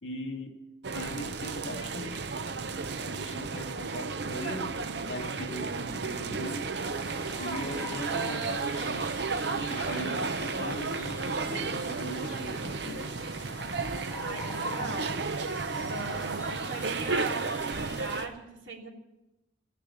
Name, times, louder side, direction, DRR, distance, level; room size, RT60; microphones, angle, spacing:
voice 1, 0.0-0.6 0.9-2.2 3.1-4.8 5.1-6.7 7.3-9.1 9.5-13.2, equal, 75° left, 5 dB, 2.0 m, -39 dB
sound 1, 0.8-18.3, right 4 dB, 55° right, 0.7 m, -33 dB
sound 2, 6.7-18.2, left 3 dB, 20° left, 2.5 m, -46 dB
voice 2, 14.2-15.2 15.7-18.9, right 2 dB, 75° right, 0 dB, 3.0 m, -39 dB
15.5 x 10.0 x 8.5 m, 0.94 s
head